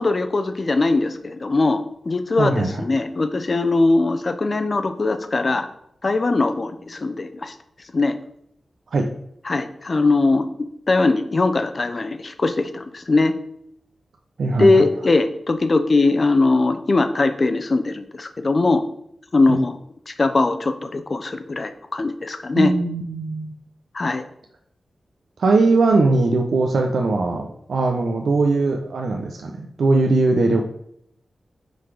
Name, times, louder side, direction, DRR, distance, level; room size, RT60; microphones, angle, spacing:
voice 1, 0.0-5.7 6.0-7.5 7.9-8.1 9.4-10.4 10.9-13.3 14.6-18.8 19.3-19.8 20.1-22.7 23.9-24.2, left 3 dB, 35° left, 9 dB, 0.7 m, -20 dB
voice 2, 2.4-2.8 8.9-9.1 14.4-14.8 19.5-19.6 22.5-23.5 25.4-30.7, right 3 dB, 65° right, 2 dB, 0.8 m, -20 dB
10.5 x 4.1 x 4.9 m, 0.73 s
wide cardioid pair, 180°, 0 cm